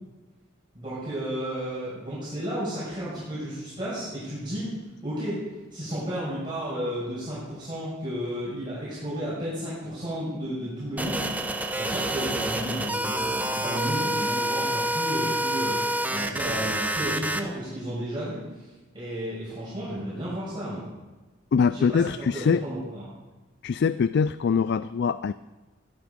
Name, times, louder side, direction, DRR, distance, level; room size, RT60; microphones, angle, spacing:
voice 1, 0.7-5.4 5.7-18.7 18.9-20.8 21.7-23.0, equal, 25° right, -9 dB, 5.9 m, -33 dB
sound 1, 11.0-17.4, right 1 dB, 10° right, 0.9 m, -28 dB
voice 2, 21.5-22.6 23.6-25.3, left 6 dB, 60° left, 15 dB, 0.3 m, -23 dB
16.0 x 12.5 x 5.3 m, 1.2 s
head